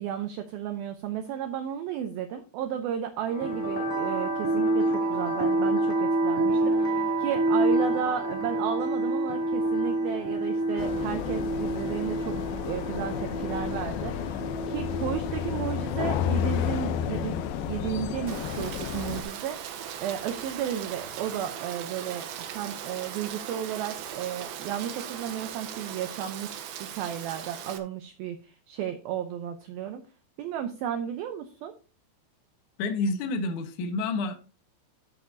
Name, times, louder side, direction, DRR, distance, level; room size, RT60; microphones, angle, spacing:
voice 1, 0.0-12.4 12.7-30.0 30.4-31.7, right 9 dB, 90° right, 2.1 m, -33 dB
sound 1, 3.3-17.4, right 2 dB, 5° right, 1.5 m, -28 dB
sound 2, 10.8-19.2, left 9 dB, 80° left, 2.3 m, -31 dB
Rain, 18.3-27.8, right 9 dB, 70° right, 2.5 m, -39 dB
voice 2, 32.8-34.3, left 3 dB, 65° left, 2.1 m, -29 dB
12.5 x 7.9 x 2.8 m
omnidirectional pair, 5.3 m